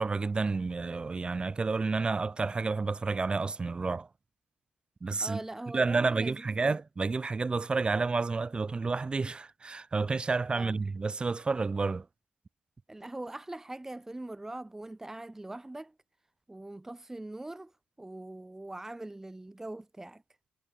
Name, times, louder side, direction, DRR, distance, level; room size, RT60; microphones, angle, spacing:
voice 1, 0.0-4.1 5.0-5.4 5.7-12.0, right 4 dB, 25° right, 1.7 m, -30 dB
voice 2, 5.2-6.8 10.5-10.8 12.9-15.9 16.5-17.7 18.0-20.2, right 2 dB, 10° right, 1.5 m, -42 dB
cardioid pair, 95°, 4 cm